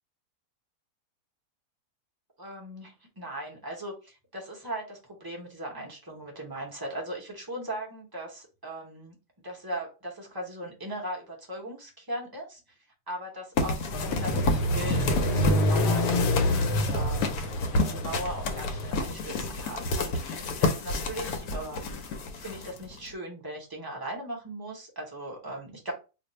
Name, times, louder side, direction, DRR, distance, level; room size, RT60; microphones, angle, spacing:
voice 1, 2.4-9.2 9.4-12.6 13.1-22.0 22.3-25.9, right 1 dB, 25° right, -1 dB, 0.5 m, -38 dB
sound 1, 13.6-23.1, left 3 dB, 70° left, 1.0 m, -30 dB
sound 2, 13.9-18.9, left 1 dB, 90° left, 1.2 m, -27 dB
2.6 x 2.3 x 4.1 m, 0.31 s
omnidirectional pair, 1.7 m